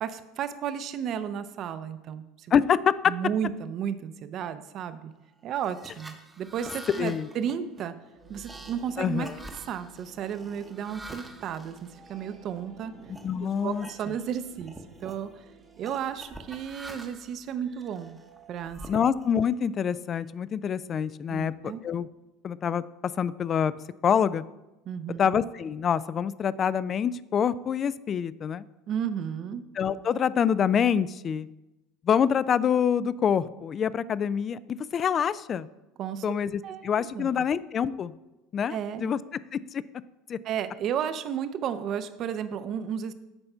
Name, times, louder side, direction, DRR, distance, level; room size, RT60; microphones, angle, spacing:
voice 1, 0.0-2.2 3.1-5.1 5.4-7.9 8.3-9.3 9.7-11.8 12.1-12.9 13.6-14.7 15.0-15.3 15.8-18.2 18.5-18.8 21.3-21.8 24.9-25.3 28.9-29.6 36.0-36.2 36.6-37.3 38.7-39.1 40.4-43.1, right 8 dB, 50° right, 12 dB, 0.6 m, -33 dB
sound 1, 5.6-12.6 13.1-13.3 13.7-14.3 14.6-15.2 15.8-17.4 17.9-19.5, right 1 dB, 10° right, 0.8 m, -46 dB
voice 2, 7.0-7.3 9.0-9.4 13.2-13.9 18.9-21.5 21.8-22.1 22.4-22.8 23.2-23.7 24.0-24.4 25.2-28.6 29.8-31.5 32.0-35.7 36.2-38.1 38.5-39.2 39.5-39.8 40.3-40.4, left 8 dB, 40° left, 18 dB, 0.3 m, -26 dB
sound 2, 8.1-20.0, right 4 dB, 35° right, 1.1 m, -54 dB
7.9 x 4.3 x 5.5 m, 0.99 s
hypercardioid pair, 90°, 0 cm